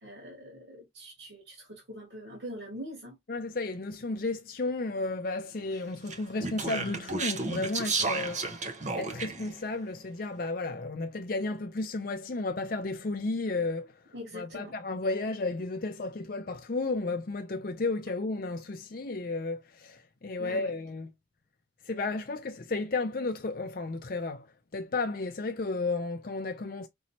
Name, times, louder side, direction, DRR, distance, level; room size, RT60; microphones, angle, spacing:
voice 1, 0.0-3.2 14.1-14.7 20.4-20.7, equal, 65° right, 2.2 m, -43 dB
voice 2, 3.3-8.4 8.9-13.9 14.3-21.1 21.9-24.5 24.7-26.9, left 3 dB, 45° left, 0.5 m, -33 dB
Speech, 6.1-9.5, right 3 dB, 40° right, 0.8 m, -32 dB
5.3 x 3.0 x 2.8 m
head